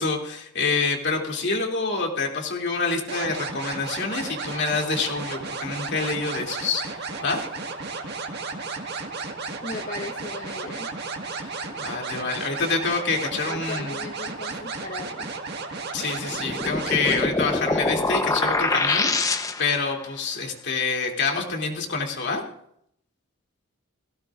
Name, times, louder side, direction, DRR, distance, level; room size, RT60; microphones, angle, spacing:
voice 1, 0.0-6.8 7.2-7.4 11.8-14.0 15.9-22.4, left 4 dB, 55° left, 1 dB, 2.8 m, -27 dB
sound 1, 3.1-17.3, right 4 dB, 50° right, 1.8 m, -33 dB
voice 2, 9.6-10.9 13.5-15.3, left 2 dB, 40° left, 1 dB, 1.2 m, -37 dB
sound 2, 16.3-19.9, left 2 dB, 15° left, 0.9 m, -25 dB
17.5 x 17.0 x 2.5 m, 0.69 s
head